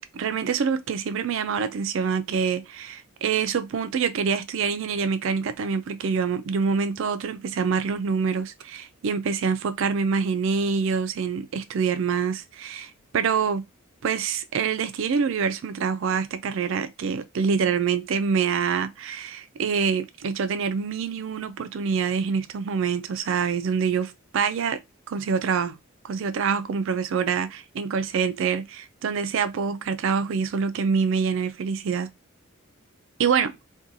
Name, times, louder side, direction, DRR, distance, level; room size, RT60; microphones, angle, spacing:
voice 1, 0.1-13.6 14.0-24.8 25.1-25.8 26.0-32.1 33.2-33.5, right 6 dB, 55° right, 0.3 m, -26 dB
2.7 x 2.2 x 2.6 m
head